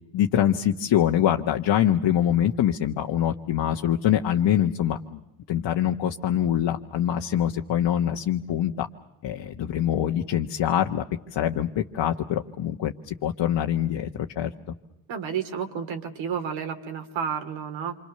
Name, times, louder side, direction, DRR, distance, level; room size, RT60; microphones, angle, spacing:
voice 1, 0.1-5.2 5.5-8.9 9.2-11.0 11.3-14.1 14.4-14.5, left 10 dB, 55° left, 2 dB, 1.4 m, -24 dB
voice 2, 15.1-18.0, right 7 dB, 70° right, 8 dB, 3.2 m, -31 dB
28.0 x 25.5 x 6.8 m, 0.85 s
cardioid pair, 115°, 49 cm